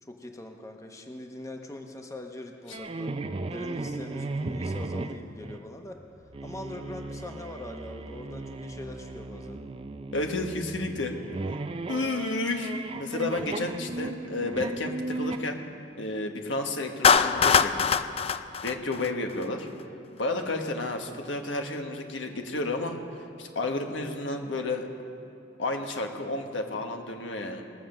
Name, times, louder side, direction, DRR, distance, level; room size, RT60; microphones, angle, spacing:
voice 1, 0.0-3.1 3.5-6.0 6.4-9.6, left 1 dB, 15° left, 3 dB, 0.9 m, -42 dB
sound 1, 2.7-5.6 6.3-15.4, right 2 dB, 30° right, 0.4 m, -36 dB
voice 2, 10.1-11.1 11.9-15.6 15.9-17.9 18.6-19.7 20.2-23.0 23.4-24.9 25.6-27.6, left 2 dB, 85° left, 3 dB, 1.3 m, -31 dB
Clapping, 17.0-19.4, left 6 dB, 30° left, 0.4 m, -22 dB
20.0 x 7.4 x 6.5 m, 2.8 s
head